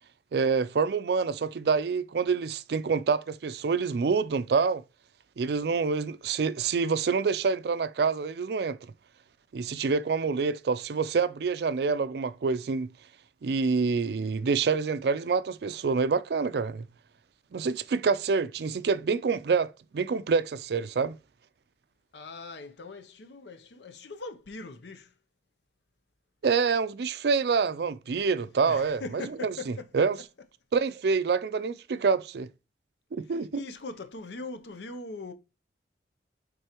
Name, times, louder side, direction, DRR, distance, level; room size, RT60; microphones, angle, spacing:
voice 1, 0.3-4.8 5.4-8.8 9.5-12.9 13.4-16.9 17.5-21.2 26.4-30.2 30.7-32.5 33.1-33.6, right 5 dB, 65° right, 0.4 m, -27 dB
voice 2, 22.1-25.1 28.6-29.9 33.5-35.3, left 3 dB, 80° left, 0.7 m, -41 dB
8.8 x 3.8 x 3.0 m
head